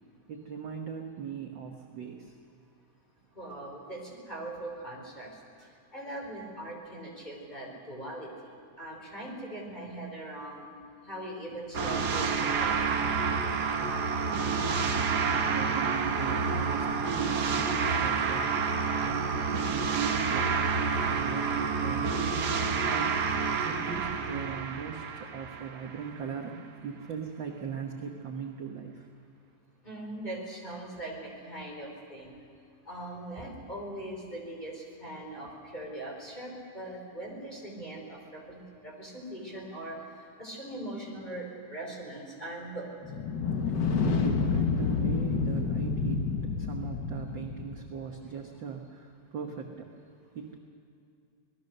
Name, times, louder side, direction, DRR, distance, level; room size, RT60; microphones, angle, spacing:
voice 1, 0.3-2.4 3.5-3.6 14.4-18.7 19.0-22.2 22.8-23.2 23.6-29.1 43.6-49.9 50.3-50.6, right 6 dB, 50° right, 2 dB, 1.5 m, -39 dB
voice 2, 3.3-5.4 5.9-8.3 8.8-10.7 11.0-13.2 17.5-17.6 29.8-32.3 32.9-42.9, right 1 dB, 15° left, -1 dB, 4.8 m, -41 dB
sound 1, 11.7-26.1, right 5 dB, 75° right, 0.9 m, -29 dB
sound 2, 43.0-47.9, left 5 dB, 55° left, 1.2 m, -29 dB
27.0 x 19.5 x 6.7 m, 2.6 s
omnidirectional pair, 3.6 m